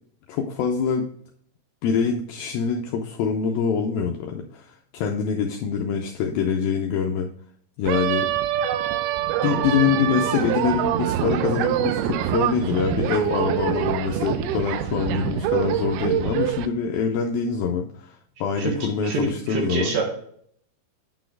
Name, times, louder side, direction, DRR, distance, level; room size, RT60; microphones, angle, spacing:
voice 1, 0.3-1.0 1.8-7.3 7.8-8.3 9.4-18.2 18.4-20.0, left 6 dB, 80° left, 2 dB, 2.1 m, -25 dB
sound 1, 7.9-16.7, right 11 dB, 80° right, 2.4 m, -25 dB
voice 2, 19.0-20.0, right 3 dB, 65° right, 0 dB, 2.7 m, -26 dB
9.0 x 4.1 x 4.6 m, 0.62 s
omnidirectional pair, 4.7 m